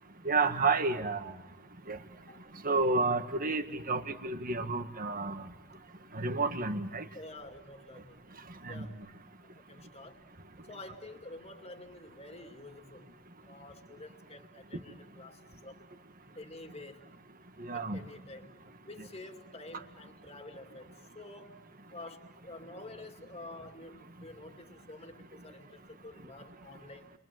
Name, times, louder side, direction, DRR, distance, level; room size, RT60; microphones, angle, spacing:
voice 1, 0.3-1.3 1.9-2.0 2.6-5.4 6.1-7.0 8.6-8.9 17.6-18.0, right 3 dB, 40° right, 8 dB, 1.8 m, -30 dB
voice 2, 7.1-8.2 8.7-9.1 9.5-10.2 10.7-13.1 13.4-15.8 16.4-17.1 17.7-21.5 21.9-27.1, left 2 dB, 30° left, 6 dB, 2.5 m, -49 dB
30.0 x 24.0 x 7.8 m, 0.93 s
head